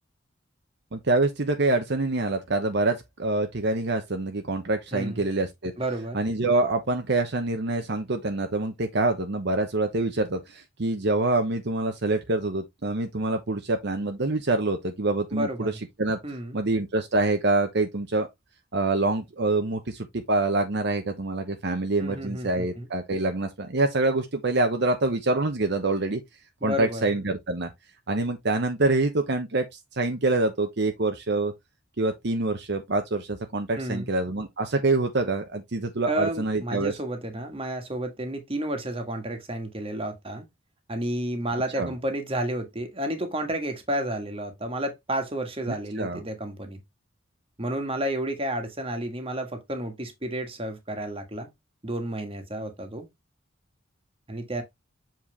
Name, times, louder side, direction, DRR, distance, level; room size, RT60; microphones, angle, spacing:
voice 1, 0.9-5.7 6.1-15.7 16.0-16.2 16.5-18.3 18.7-26.2 26.6-27.7 28.1-29.6 29.9-31.5 32.0-36.9 41.8-41.9 45.7-46.2, right 2 dB, 60° right, 0.9 m, -26 dB
voice 2, 4.9-5.3 5.8-6.2 15.3-15.7 16.2-16.6 22.0-22.9 26.6-27.0 33.8-34.1 36.1-40.5 40.9-46.8 47.6-51.5 51.8-53.1 54.3-54.6, right 1 dB, 30° right, 1.7 m, -31 dB
7.5 x 4.5 x 3.4 m
head